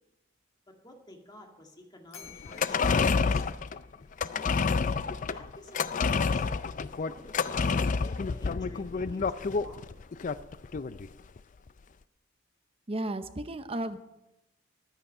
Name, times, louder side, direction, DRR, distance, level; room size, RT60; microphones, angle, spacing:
voice 1, 0.7-3.8 5.1-6.6 7.0-10.0, left 1 dB, 20° left, 2 dB, 1.9 m, -53 dB
Bell, 2.1-4.4, left 8 dB, 90° left, 3.0 m, -53 dB
sound 1, 2.4-11.1 11.4-11.5, left 5 dB, 40° left, 0.4 m, -28 dB
voice 2, 12.9-14.0, right 1 dB, 30° right, 9 dB, 0.8 m, -33 dB
14.5 x 10.5 x 5.5 m, 0.91 s
head